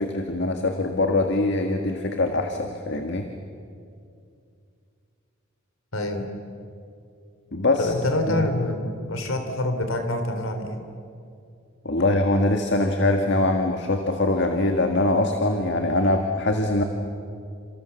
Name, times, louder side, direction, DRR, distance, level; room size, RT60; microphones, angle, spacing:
voice 1, 0.0-3.3 7.5-7.9 8.3-8.5 11.9-16.8, left 2 dB, 55° left, 4 dB, 1.8 m, -23 dB
voice 2, 5.9-6.3 7.8-10.8, left 1 dB, 90° left, 6 dB, 3.6 m, -26 dB
30.0 x 27.5 x 7.1 m, 2.4 s
head